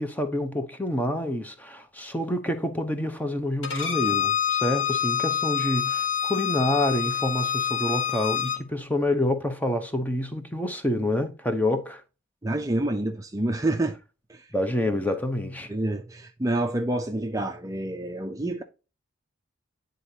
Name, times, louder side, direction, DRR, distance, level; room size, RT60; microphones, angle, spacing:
voice 1, 0.0-12.0 14.5-15.7, left 1 dB, 10° left, 0.8 m, -27 dB
Bowed string instrument, 3.6-8.6, left 8 dB, 65° left, 1.4 m, -27 dB
voice 2, 12.4-14.0 14.3-14.5 15.7-18.6, right 1 dB, 15° right, 0.5 m, -28 dB
9.8 x 3.9 x 2.7 m
head